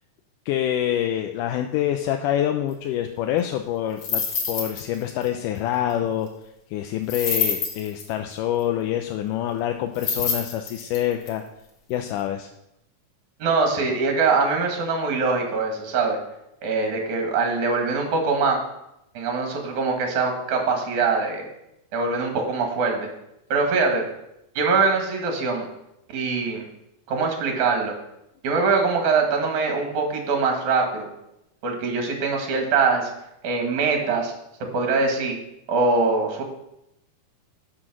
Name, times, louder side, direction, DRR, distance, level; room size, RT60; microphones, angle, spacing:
voice 1, 0.5-6.3 6.7-11.4 11.9-12.5, left 11 dB, 85° left, 5 dB, 2.2 m, -26 dB
sound 1, 4.0-5.0 5.2-5.3 7.1-8.1 9.9-11.3, left 5 dB, 50° left, 2.2 m, -26 dB
voice 2, 13.4-16.2 16.6-18.6 19.1-21.4 21.9-23.1 23.5-24.0 24.6-25.7 26.1-26.7 27.1-27.9 28.4-31.1 31.6-33.1 33.4-34.3 34.7-35.4 35.7-36.4, right 4 dB, 70° right, 2 dB, 3.1 m, -23 dB
11.5 x 5.9 x 6.1 m, 0.85 s
omnidirectional pair, 3.7 m